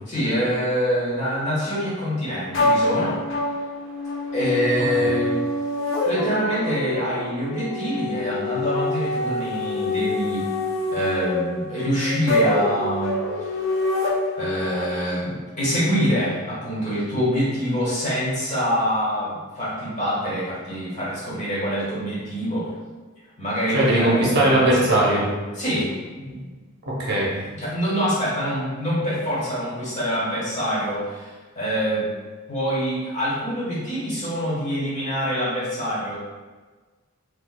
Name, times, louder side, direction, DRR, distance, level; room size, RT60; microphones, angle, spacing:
voice 1, 0.1-3.2 4.3-5.4 6.0-10.5 10.9-13.2 14.4-22.7 23.4-24.7 25.5-26.0 27.5-32.1 32.5-36.1, equal, 35° left, -9 dB, 1.4 m, -25 dB
sound 1, 2.5-14.8, left 2 dB, 70° left, 0.6 m, -26 dB
voice 2, 23.7-25.3 26.2-26.4 26.8-27.3, right 1 dB, 55° right, -5 dB, 0.8 m, -20 dB
4.5 x 2.4 x 2.2 m, 1.3 s
head